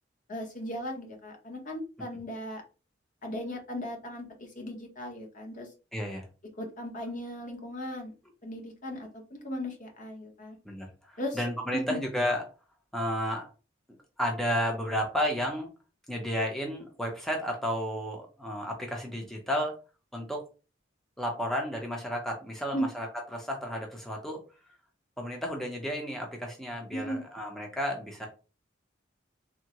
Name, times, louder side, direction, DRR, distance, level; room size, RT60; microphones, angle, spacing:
voice 1, 0.3-2.6 3.2-5.7 6.6-8.1 8.4-10.6 11.2-11.4 11.7-12.0 22.7-22.9 26.9-27.2, equal, 45° left, 2 dB, 0.8 m, -37 dB
voice 2, 5.9-6.3 10.6-12.4 12.9-13.5 14.2-15.7 16.1-19.8 20.1-20.4 21.2-24.4 25.2-28.3, equal, ahead, 1 dB, 0.5 m, -32 dB
3.5 x 2.0 x 2.8 m, 0.32 s
head